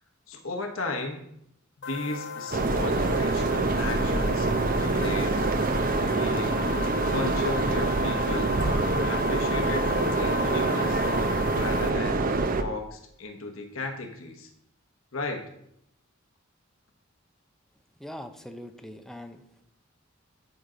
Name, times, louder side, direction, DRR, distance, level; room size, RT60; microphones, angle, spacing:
voice 1, 0.3-1.2 1.9-5.4 6.0-11.0 11.5-14.5 15.1-15.5, left 2 dB, 75° left, 3 dB, 1.1 m, -35 dB
sound 1, 1.8-11.9, left 6 dB, 60° left, 0.6 m, -36 dB
sound 2, 2.5-12.6, right 3 dB, 45° right, 0.6 m, -25 dB
voice 2, 18.0-19.4, equal, ahead, 6 dB, 0.6 m, -41 dB
12.0 x 5.0 x 3.9 m, 0.74 s
head